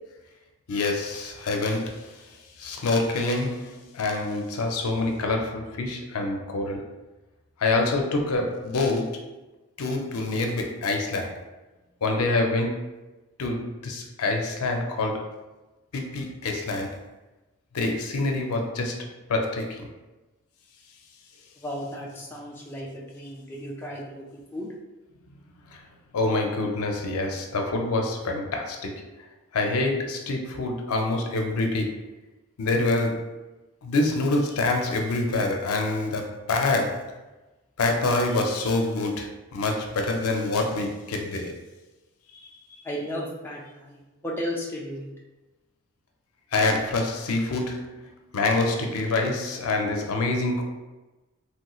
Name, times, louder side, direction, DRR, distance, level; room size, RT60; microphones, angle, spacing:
voice 1, 0.7-6.9 7.6-9.2 9.8-11.4 12.0-12.9 13.4-15.3 15.9-17.0 17.7-19.9 25.7-25.8 26.1-29.0 29.5-32.0 32.6-33.3 33.8-37.1 37.8-41.5 42.3-42.8 46.5-50.6, left 2 dB, 90° left, 2 dB, 0.5 m, -26 dB
voice 2, 21.6-24.7 42.8-45.1, equal, 10° left, -3 dB, 0.3 m, -35 dB
3.1 x 3.0 x 2.3 m, 1.1 s
head